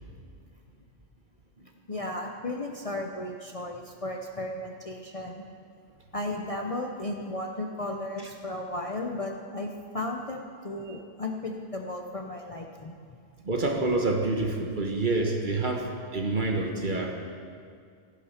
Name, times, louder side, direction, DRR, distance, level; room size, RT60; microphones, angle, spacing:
voice 1, 1.9-5.4 6.1-13.0, left 1 dB, 35° left, 2 dB, 0.7 m, -35 dB
voice 2, 13.4-17.1, right 2 dB, 40° right, 2 dB, 1.4 m, -27 dB
15.5 x 10.0 x 5.7 m, 2.2 s
omnidirectional pair, 1.3 m